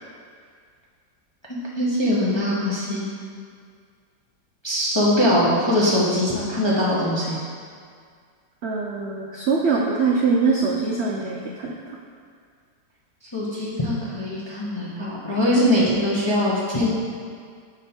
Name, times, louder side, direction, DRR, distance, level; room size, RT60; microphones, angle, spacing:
voice 1, 1.5-3.0 4.6-7.4 13.3-16.9, left 1 dB, 30° left, -7 dB, 0.5 m, -22 dB
voice 2, 8.6-12.0, right 4 dB, 75° right, -2 dB, 0.6 m, -23 dB
6.1 x 5.1 x 4.3 m, 2.1 s
omnidirectional pair, 1.8 m